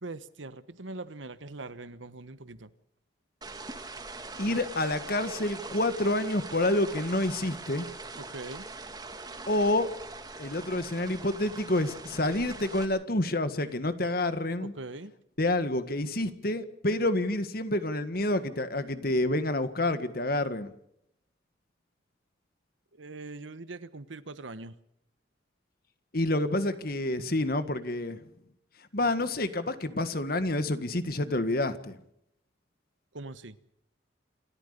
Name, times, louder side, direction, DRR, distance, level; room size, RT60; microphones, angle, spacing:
voice 1, 0.0-2.7 8.2-8.7 14.6-15.1 22.9-24.7 33.1-33.6, right 2 dB, 85° right, 13 dB, 1.3 m, -42 dB
sound 1, 3.4-12.8, right 3 dB, 20° right, 2.0 m, -42 dB
voice 2, 4.4-7.9 9.5-9.9 10.4-14.7 15.4-20.7 26.1-28.2 28.9-32.0, left 1 dB, 50° left, 11 dB, 1.7 m, -28 dB
28.0 x 14.0 x 6.8 m, 0.77 s
head